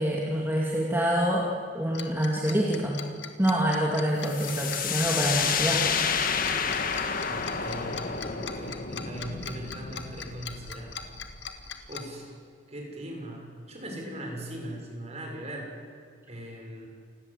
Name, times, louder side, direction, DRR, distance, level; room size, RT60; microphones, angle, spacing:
voice 1, 0.0-3.0 3.4-5.9, equal, 10° right, -3 dB, 2.6 m, -26 dB
Tick-tock, 1.9-12.0, left 8 dB, 65° left, 2.1 m, -40 dB
sound 1, 4.3-11.9, left 6 dB, 45° left, 1.7 m, -30 dB
voice 2, 7.2-11.0 11.9-12.3 12.7-15.8 16.3-16.9, right 1 dB, 35° right, 1 dB, 6.1 m, -40 dB
29.0 x 19.5 x 8.3 m, 2.2 s
head